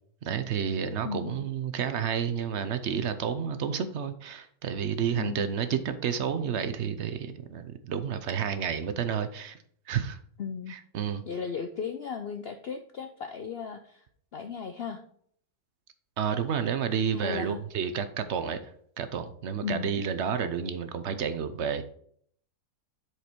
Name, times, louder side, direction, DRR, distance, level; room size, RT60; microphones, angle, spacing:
voice 1, 0.2-9.6 9.9-10.2 10.7-11.2 16.2-18.6 19.0-21.8, right 7 dB, 60° right, 11 dB, 0.8 m, -30 dB
voice 2, 1.0-1.5 5.2-5.6 10.4-10.7 11.3-14.0 14.3-15.0 17.1-17.6 19.6-20.0, left 6 dB, 75° left, 7 dB, 0.5 m, -36 dB
7.9 x 4.9 x 4.4 m, 0.62 s
omnidirectional pair, 1.7 m